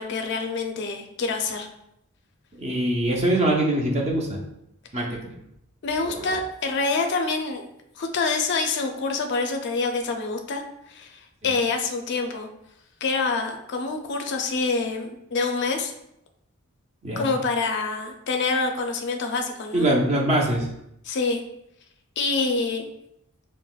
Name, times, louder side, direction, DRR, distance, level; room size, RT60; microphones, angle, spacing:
voice 1, 0.0-1.7 5.8-7.7 8.0-10.6 10.9-12.5 13.0-15.9 17.2-19.9 21.1-21.4 22.2-22.9, left 4 dB, 55° left, 4 dB, 0.4 m, -26 dB
voice 2, 2.6-4.4 4.9-5.4 6.0-6.3 11.4-11.5 17.0-17.3 19.7-20.7, right 1 dB, 30° right, 0 dB, 0.6 m, -23 dB
5.5 x 2.1 x 2.3 m, 0.80 s
head